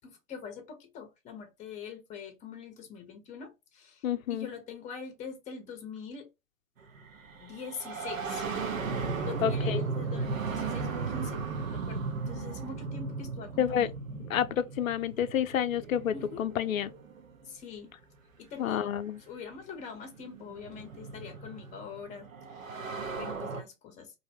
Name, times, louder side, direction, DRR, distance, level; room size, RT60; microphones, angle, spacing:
voice 1, 0.0-4.0 4.3-6.3 7.4-8.5 9.2-13.9 16.1-16.4 17.5-17.9 18.4-18.9 19.3-22.3 22.5-22.7 23.2-24.1, left 6 dB, 20° left, 0.7 m, -44 dB
voice 2, 4.0-4.5 9.4-9.9 13.6-13.9 14.3-16.9 18.6-19.2, left 9 dB, 85° left, 0.5 m, -29 dB
sound 1, 6.9-17.5 18.7-18.8 19.9-23.6, right 4 dB, 85° right, 0.8 m, -36 dB
2.6 x 2.0 x 2.7 m
hypercardioid pair, 115°, 39 cm